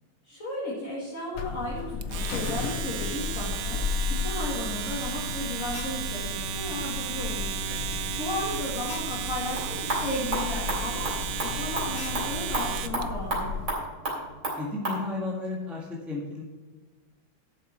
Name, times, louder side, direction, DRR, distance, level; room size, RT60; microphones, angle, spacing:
voice 1, 0.2-3.8 4.1-7.5 8.2-13.5, left 1 dB, 40° left, -6 dB, 2.5 m, -34 dB
Alarm, 1.3-13.7, left 5 dB, 75° left, 0.6 m, -34 dB
Domestic sounds home sounds, 2.0-13.0, right 10 dB, 70° right, 0.8 m, -34 dB
voice 2, 7.7-8.1 14.6-16.4, left 3 dB, ahead, -3 dB, 1.5 m, -34 dB
sound 1, 9.3-15.0, right 1 dB, 40° right, 3.9 m, -33 dB
12.0 x 7.4 x 4.5 m, 1.4 s
omnidirectional pair, 2.2 m